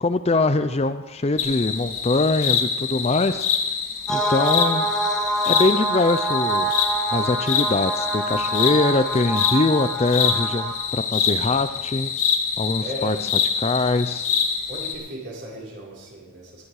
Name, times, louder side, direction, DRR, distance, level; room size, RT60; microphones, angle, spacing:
voice 1, 0.0-3.5 4.1-4.9 5.5-6.7 7.1-12.1 12.6-13.2 13.6-14.3, left 2 dB, 30° left, 11 dB, 0.4 m, -22 dB
sound 1, 1.4-14.9, left 7 dB, 90° left, 2.3 m, -25 dB
sound 2, 4.1-10.8, right 2 dB, ahead, 1.3 m, -26 dB
voice 2, 12.8-13.2 14.7-16.7, left 1 dB, 55° right, -4 dB, 4.7 m, -36 dB
19.5 x 10.5 x 4.8 m, 1.1 s
head